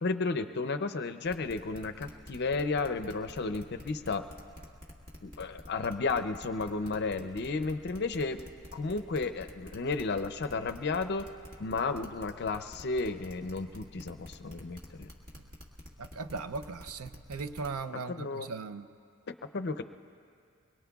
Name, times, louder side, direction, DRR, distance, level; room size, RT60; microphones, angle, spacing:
voice 1, 0.0-4.2 5.2-8.4 8.7-11.3 11.6-15.1 18.1-18.5 19.3-19.8, left 3 dB, 50° left, 10 dB, 0.5 m, -33 dB
sound 1, 1.2-17.7, left 1 dB, 40° right, 1.7 m, -48 dB
voice 2, 16.0-18.9, right 4 dB, 75° right, 11 dB, 0.5 m, -38 dB
24.5 x 22.0 x 2.4 m, 2.4 s
head